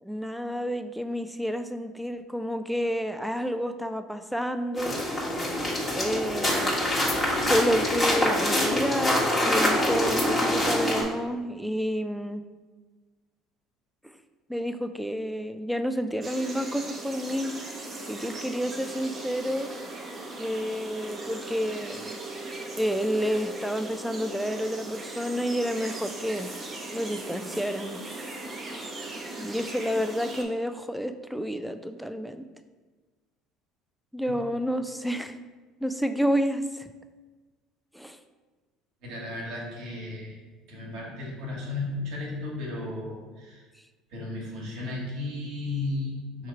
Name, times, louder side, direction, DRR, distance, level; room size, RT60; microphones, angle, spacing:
voice 1, 0.0-5.0 5.9-6.9 7.4-12.4 14.0-14.1 14.5-17.6 18.1-19.7 20.4-22.2 22.8-26.5 26.9-28.0 28.7-28.9 29.4-32.4 34.1-35.4 35.8-36.9 37.9-38.2, equal, ahead, 9 dB, 0.3 m, -30 dB
sound 1, 4.8-11.0, left 1 dB, 20° left, 1.3 m, -25 dB
sound 2, 16.2-30.4, right 2 dB, 30° right, 0.8 m, -38 dB
voice 2, 39.0-40.4 40.7-43.6 44.1-46.5, left 2 dB, 70° right, -3 dB, 1.2 m, -34 dB
3.6 x 2.9 x 4.3 m, 1.3 s
hypercardioid pair, 70°, 0 cm